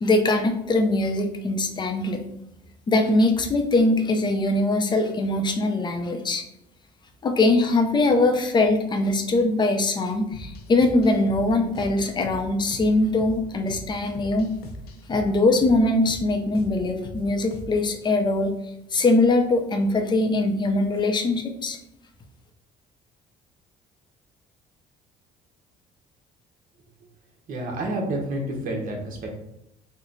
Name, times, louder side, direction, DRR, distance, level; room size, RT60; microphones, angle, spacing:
voice 1, 0.0-2.2 2.9-6.4 7.2-14.5 15.1-18.5 18.9-21.8, left 2 dB, 25° left, 4 dB, 0.5 m, -22 dB
sound 1, 10.3-18.0, left 2 dB, 70° left, 0.6 m, -41 dB
voice 2, 27.5-29.3, right 1 dB, 55° right, 0 dB, 0.9 m, -29 dB
3.1 x 2.1 x 3.8 m, 0.83 s
cardioid pair, 110°, 17 cm